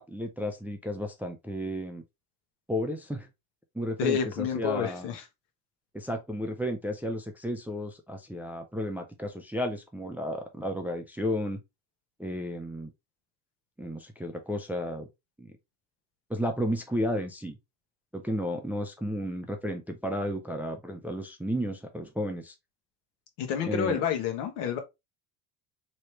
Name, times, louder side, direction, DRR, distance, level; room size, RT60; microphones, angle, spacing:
voice 1, 0.0-2.0 2.7-3.3 3.7-5.1 5.9-11.6 12.2-12.9 13.8-15.1 15.4-15.5 16.3-17.6 18.1-22.5 23.6-24.0, equal, 5° right, 0.4 m, -33 dB
voice 2, 4.0-5.2 23.4-24.8, left 8 dB, 75° left, 1.2 m, -29 dB
3.1 x 3.0 x 3.0 m
supercardioid pair, 85°, 50 cm